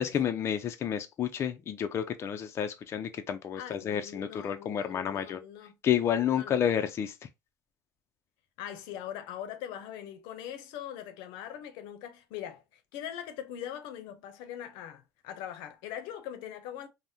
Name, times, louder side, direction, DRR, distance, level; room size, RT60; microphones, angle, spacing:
voice 1, 0.0-5.4 5.8-7.1, left 9 dB, 35° left, 0.4 m, -30 dB
voice 2, 3.6-5.8 6.2-6.6 8.6-16.9, left 10 dB, 85° left, 0.6 m, -42 dB
3.5 x 2.1 x 2.7 m
cardioid pair, 135°, 8 cm